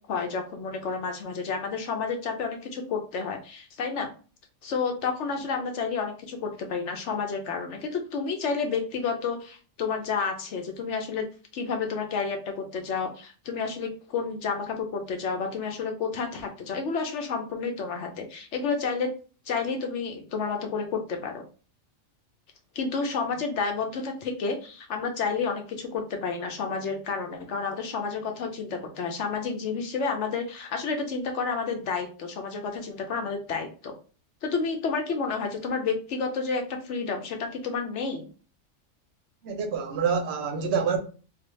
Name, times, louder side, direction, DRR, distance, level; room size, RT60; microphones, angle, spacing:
voice 1, 0.1-4.1 4.6-11.3 11.5-19.1 19.5-21.4 22.7-34.0 34.4-38.3, left 5 dB, 70° left, 0.8 m, -30 dB
voice 2, 39.4-41.0, right 6 dB, 65° right, 0.7 m, -27 dB
3.2 x 2.1 x 3.1 m
omnidirectional pair, 1.4 m